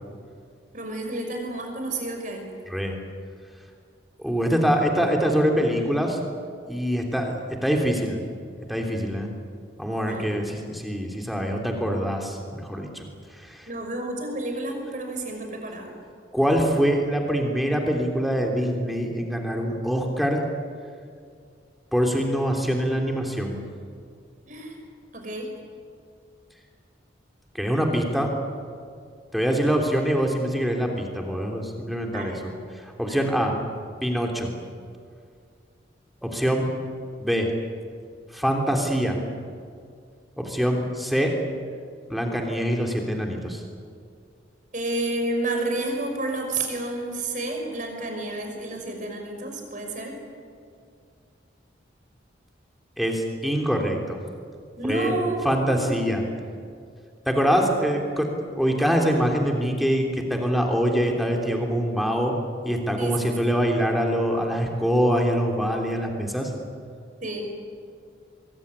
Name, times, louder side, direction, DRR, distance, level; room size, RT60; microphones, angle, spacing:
voice 1, 0.7-2.4 10.0-10.3 13.7-15.9 24.5-24.8 25.1-25.5 32.1-32.5 33.0-33.2 44.7-50.2 54.8-56.0 63.0-63.2 67.2-67.4, right 2 dB, 40° right, 3 dB, 5.9 m, -30 dB
voice 2, 2.7-3.0 4.2-6.2 6.7-7.3 7.6-8.2 8.7-9.3 9.8-13.1 13.3-13.7 16.3-20.4 21.9-23.6 27.5-28.3 29.3-32.4 32.7-33.6 34.0-34.5 36.2-36.7 37.2-37.5 38.3-39.2 40.4-41.3 42.1-43.6 53.0-54.2 54.8-55.1 55.4-56.2 57.2-62.3 62.6-66.5, equal, ahead, 1 dB, 3.2 m, -24 dB
23.5 x 23.0 x 9.8 m, 2.3 s
head